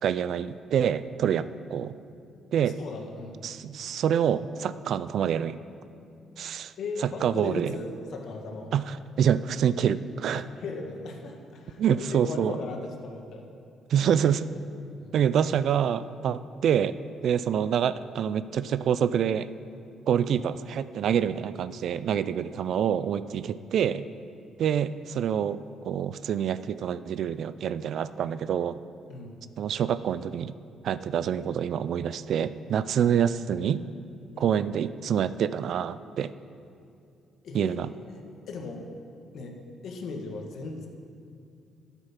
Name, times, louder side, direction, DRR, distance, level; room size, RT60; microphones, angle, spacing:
voice 1, 0.0-2.0 2.5-2.8 3.4-5.6 6.4-6.7 7.0-7.7 8.7-10.5 11.8-12.6 13.9-14.4 15.1-17.0 17.2-19.5 20.1-24.0 24.6-28.8 29.6-30.5 30.8-33.8 34.4-36.3 37.5-37.9, right 8 dB, 65° right, 15 dB, 0.4 m, -26 dB
voice 2, 2.6-3.4 6.8-8.7 10.3-13.4 14.0-14.1 15.0-15.1 23.6-23.7 29.1-29.4 34.3-34.6 37.4-37.8 38.1-38.9 39.3-40.9, left 3 dB, 65° left, 2 dB, 1.6 m, -38 dB
12.0 x 8.1 x 5.8 m, 2.4 s
cardioid pair, 85°, 0 cm